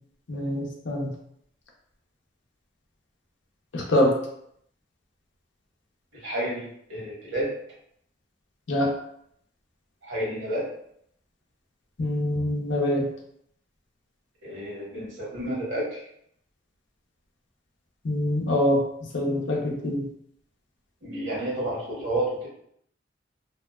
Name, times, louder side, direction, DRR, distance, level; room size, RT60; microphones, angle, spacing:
voice 1, 0.3-1.1 3.7-4.1 8.7-8.9 12.0-13.1 18.0-18.8 19.1-20.0, left 1 dB, 70° left, -1 dB, 0.6 m, -24 dB
voice 2, 6.1-7.5 10.0-10.7 14.4-16.0 21.0-22.5, right 1 dB, 90° right, -5 dB, 1.1 m, -30 dB
2.7 x 2.0 x 2.3 m, 0.71 s
head